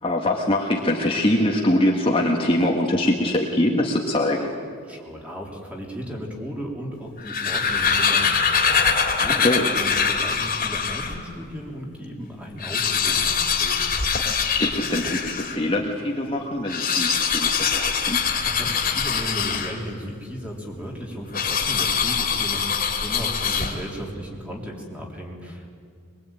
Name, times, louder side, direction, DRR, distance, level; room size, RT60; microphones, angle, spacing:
voice 1, 0.0-4.5 9.2-9.7 14.6-18.2, left 1 dB, 25° left, 0 dB, 1.7 m, -23 dB
voice 2, 4.9-13.8 18.4-25.7, equal, 5° right, -1 dB, 3.7 m, -35 dB
sound 1, 7.1-11.2 11.8-11.9 12.1-12.2 12.5-15.6 16.6-20.0 21.3-24.0, left 6 dB, 40° left, 2.8 m, -23 dB
23.0 x 23.0 x 9.1 m, 2.2 s
head